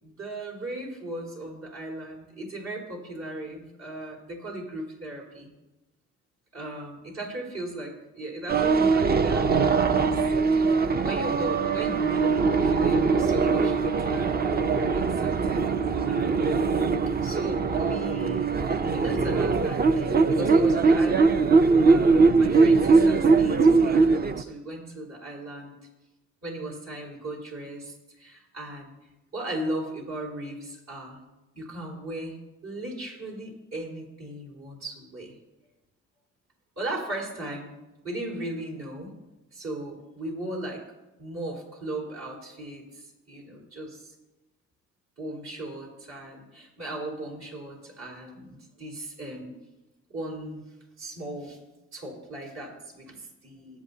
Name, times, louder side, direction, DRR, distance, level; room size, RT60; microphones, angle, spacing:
voice 1, 0.0-5.5 6.5-10.8 11.0-15.7 16.1-16.6 17.2-18.5 18.9-21.5 21.8-25.7 26.4-28.9 29.3-31.2 31.5-32.4 32.6-35.4 36.8-37.7 38.0-39.2 39.5-40.8 41.2-44.1 45.2-49.5 50.1-50.6 51.0-51.6 51.9-53.8, right 1 dB, 60° right, -2 dB, 4.5 m, -37 dB
sound 1, 8.5-24.4, right 4 dB, 30° right, 0.6 m, -21 dB
20.0 x 8.1 x 2.8 m, 1.0 s
cardioid pair, 90°, 30 cm